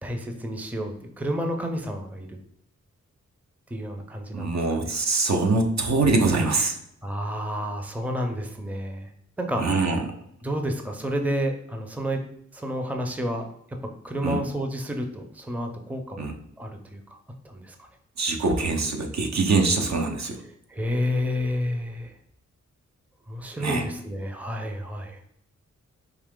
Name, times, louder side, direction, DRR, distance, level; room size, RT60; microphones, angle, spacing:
voice 1, 0.0-2.4 3.7-4.9 7.0-9.1 9.4-9.9 10.4-12.2 12.5-13.8 14.0-16.3 16.6-17.0 17.4-17.9 20.7-22.2 23.3-25.2, equal, 5° right, 4 dB, 0.6 m, -30 dB
voice 2, 4.3-6.8 9.6-10.0 14.2-14.4 16.2-16.3 18.2-20.4 23.6-23.9, right 3 dB, 65° right, 3 dB, 0.8 m, -23 dB
4.8 x 2.8 x 3.7 m, 0.72 s
cardioid pair, 70°, 30 cm